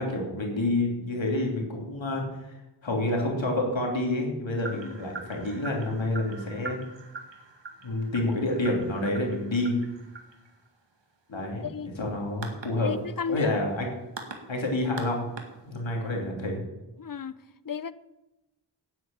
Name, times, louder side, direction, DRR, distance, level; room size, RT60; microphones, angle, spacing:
voice 1, 0.0-2.5 2.8-6.8 7.8-9.8 11.3-11.6 12.0-12.9 13.3-13.9 14.5-15.2 15.6-16.6, left 1 dB, 90° left, 3.2 m, -28 dB
sound 1, 4.6-16.1, right 3 dB, 70° right, 2.1 m, -44 dB
voice 2, 11.3-11.9 12.8-13.6 17.0-17.3 17.6-17.9, left 6 dB, 50° left, 0.7 m, -33 dB
9.6 x 9.5 x 8.7 m
wide cardioid pair, 65°, 44 cm